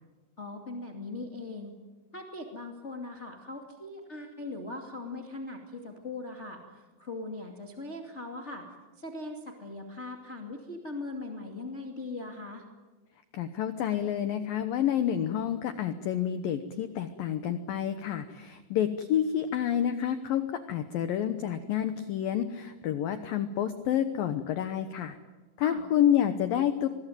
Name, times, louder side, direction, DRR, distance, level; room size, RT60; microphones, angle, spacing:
voice 1, 0.4-1.7 2.1-8.6 9.0-12.6 25.6-25.8, left 2 dB, 30° left, 1 dB, 1.2 m, -40 dB
voice 2, 13.3-25.2 25.6-26.9, left 10 dB, 80° left, 10 dB, 2.0 m, -29 dB
26.0 x 21.0 x 9.2 m, 1.2 s
omnidirectional pair, 5.6 m